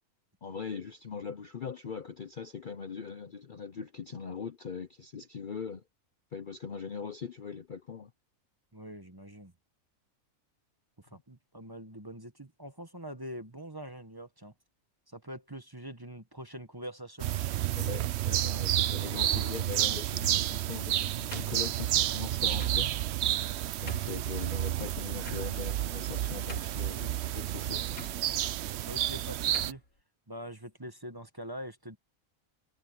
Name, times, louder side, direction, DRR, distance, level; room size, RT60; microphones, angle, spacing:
voice 1, 0.4-5.8 6.3-8.1 17.7-22.9 23.8-28.2, left 6 dB, 45° left, 0.7 m, -41 dB
voice 2, 8.7-9.5 11.0-14.5 15.1-17.3 23.9-24.2 28.8-29.8 30.3-32.0, equal, 15° right, 1.2 m, -44 dB
sound 1, 17.2-29.7, right 13 dB, 65° right, 0.7 m, -30 dB
sound 2, 20.1-20.6 21.3-22.0 22.6-22.8 23.4-23.5 23.9-24.2 25.2-25.8 26.1-26.2 26.5-27.0 27.9-28.1 29.0-29.1 29.5-29.8, left 1 dB, 80° left, 4.9 m, -44 dB
omnidirectional pair, 1.5 m